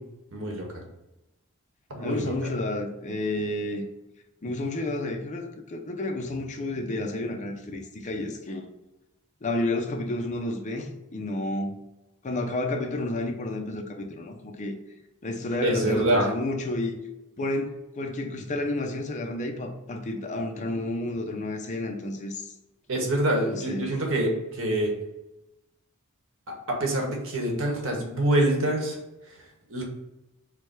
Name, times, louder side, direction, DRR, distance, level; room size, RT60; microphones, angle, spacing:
voice 1, 0.3-0.7 1.9-2.3 15.6-16.3 22.9-24.9 26.5-29.0 29.7-29.8, right 1 dB, 65° right, 0 dB, 1.2 m, -25 dB
voice 2, 2.0-3.9 4.4-8.7 9.4-11.7 12.2-14.8 15.2-17.0 17.4-22.5 23.5-24.0, left 2 dB, 35° left, 3 dB, 0.6 m, -31 dB
4.7 x 2.3 x 4.7 m, 0.95 s
head